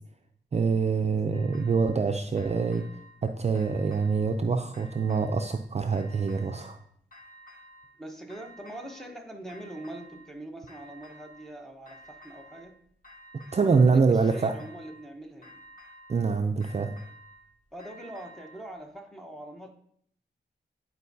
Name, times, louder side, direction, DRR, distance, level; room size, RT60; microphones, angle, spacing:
voice 1, 0.5-2.8 3.2-6.8 13.5-14.5 16.1-16.9, right 4 dB, 35° right, 5 dB, 0.4 m, -25 dB
sound 1, 1.3-2.0 2.4-3.2 3.5-4.4 4.7-5.6 5.9-6.8 7.1-8.0 8.3-9.2 9.5-10.3 10.7-11.5 11.9-12.7 13.0-13.9 14.2-15.1 15.4-16.3 16.6-18.7, equal, 50° left, 1.4 m, -52 dB
voice 2, 8.0-12.7 13.6-15.6 17.7-19.7, right 1 dB, ahead, 2 dB, 1.0 m, -43 dB
10.5 x 4.5 x 2.7 m, 0.66 s
wide cardioid pair, 90°, 18 cm